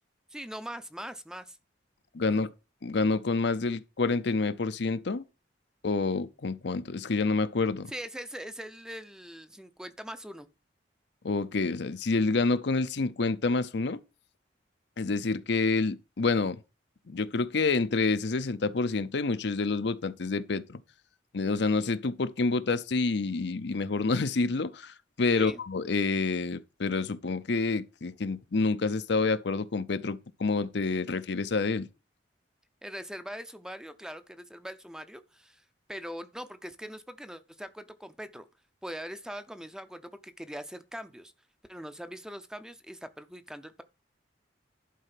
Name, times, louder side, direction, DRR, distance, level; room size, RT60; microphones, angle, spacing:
voice 1, 0.3-1.6 2.2-2.4 7.9-10.5 25.3-25.6 32.8-35.6 35.9-38.5 38.8-41.3 41.7-43.8, equal, 5° right, 0.6 m, -42 dB
voice 2, 2.1-2.5 2.8-5.2 5.8-7.9 11.2-14.0 15.0-16.6 17.1-20.8 21.3-31.9, left 3 dB, 65° left, 0.7 m, -28 dB
11.0 x 4.3 x 5.8 m
head